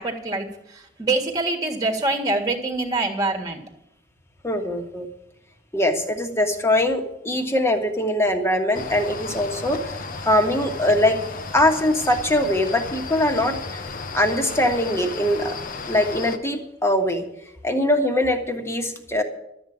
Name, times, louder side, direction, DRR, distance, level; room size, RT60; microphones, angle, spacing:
voice 1, 0.0-3.6, right 2 dB, 20° right, 3 dB, 1.8 m, -25 dB
voice 2, 4.4-5.1 5.7-9.8 10.2-11.2 11.5-13.8 14.1-15.5 15.9-17.2 17.6-19.2, left 1 dB, 15° left, 4 dB, 1.5 m, -22 dB
sound 1, 8.7-16.4, left 4 dB, 45° left, 1.0 m, -34 dB
12.5 x 7.8 x 8.6 m, 0.81 s
head